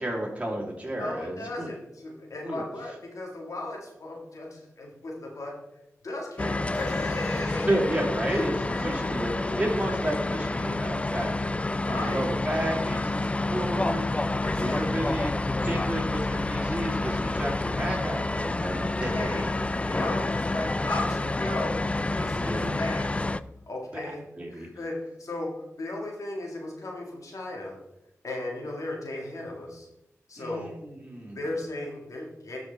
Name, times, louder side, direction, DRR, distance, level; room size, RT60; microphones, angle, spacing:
voice 1, 0.0-1.7 2.4-2.6 7.6-8.5 8.8-19.3 22.3-22.8 23.9-24.7 30.4-31.4, right 1 dB, 25° right, -3 dB, 3.0 m, -32 dB
voice 2, 1.0-5.6 6.0-8.0 8.3-9.2 9.5-9.6 11.2-11.3 11.8-12.3 14.4-15.1 19.1-19.5 19.8-23.2 23.7-24.2 24.5-27.8 28.2-29.9 30.3-30.7 31.4-32.6, left 2 dB, 75° left, 0 dB, 1.8 m, -36 dB
sound 1, 6.4-23.4, left 2 dB, 20° left, 0.3 m, -29 dB
12.5 x 4.9 x 3.4 m, 0.89 s
cardioid pair, 45°, 6 cm